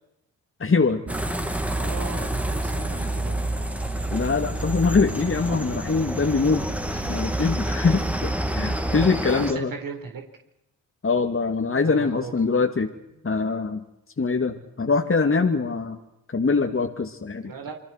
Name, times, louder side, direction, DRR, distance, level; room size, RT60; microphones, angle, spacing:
voice 1, 0.6-1.0 4.1-6.7 7.1-9.7 11.0-12.9 13.2-13.8 14.2-16.0 16.3-17.5, left 4 dB, 35° left, 4 dB, 2.5 m, -23 dB
sound 1, 1.1-9.5, equal, 5° right, 3.0 m, -31 dB
sound 2, 1.1-9.1, right 2 dB, 45° right, 2.9 m, -30 dB
voice 2, 1.7-3.4 6.9-7.0 8.9-10.2 11.8-12.6 17.4-17.7, right 5 dB, 65° right, 2 dB, 4.5 m, -38 dB
28.5 x 21.0 x 6.0 m, 0.87 s
supercardioid pair, 55°, 36 cm